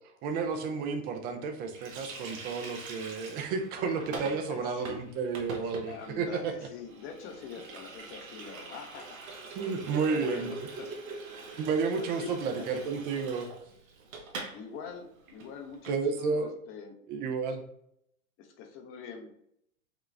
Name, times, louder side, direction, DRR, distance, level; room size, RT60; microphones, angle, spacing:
voice 1, 0.2-6.5 9.5-10.5 11.6-13.5 15.9-16.5 17.1-17.6, right 5 dB, 25° right, 6 dB, 0.4 m, -31 dB
Water tap faucet, 1.7-14.6 14.9-15.0 15.3-16.0, right 3 dB, 70° right, 1.1 m, -43 dB
voice 2, 4.5-5.0 5.8-9.4 10.0-11.0 12.0-12.9 14.5-17.0 18.4-19.3, left 6 dB, 30° left, 4 dB, 0.7 m, -44 dB
5.0 x 2.3 x 3.2 m, 0.72 s
hypercardioid pair, 110°, 42 cm